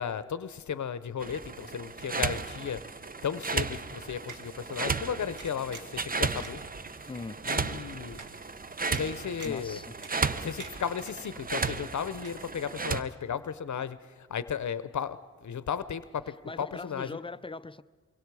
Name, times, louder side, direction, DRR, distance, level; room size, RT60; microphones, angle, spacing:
voice 1, 0.0-2.8 3.2-6.6 7.4-8.2 8.9-9.8 10.4-17.2, left 7 dB, 70° left, 0.7 m, -35 dB
sound 1, 1.2-13.0, right 4 dB, 30° right, 0.7 m, -34 dB
sound 2, 3.1-13.2, left 4 dB, 45° right, 5.5 m, -65 dB
sound 3, 4.3-4.4 4.8-4.9 5.4-6.0 6.4-6.5 7.0-7.1 7.5-7.6 8.2-8.3 8.9-9.1 9.4-9.7 10.0-10.3 10.6-11.2 11.5-12.0 12.2-12.3, right 5 dB, 75° right, 1.7 m, -45 dB
voice 2, 7.1-7.4 9.4-9.9 16.4-17.8, left 3 dB, 15° left, 0.5 m, -40 dB
24.0 x 22.5 x 4.8 m
wide cardioid pair, 75°, 30 cm